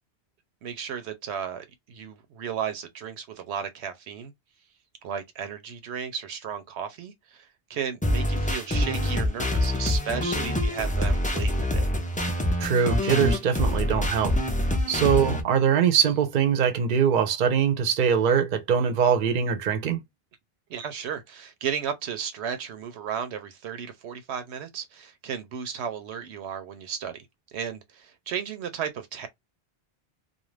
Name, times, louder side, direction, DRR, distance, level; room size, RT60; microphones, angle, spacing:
voice 1, 0.6-4.3 5.0-11.9 14.8-14.9 20.7-27.2 27.5-29.3, right 7 dB, 85° right, 0.9 m, -34 dB
sound 1, 8.0-15.4, left 1 dB, 15° left, 0.3 m, -25 dB
voice 2, 12.6-14.4 14.9-20.0, right 7 dB, 55° right, 0.7 m, -22 dB
2.5 x 2.2 x 3.1 m
omnidirectional pair, 1.1 m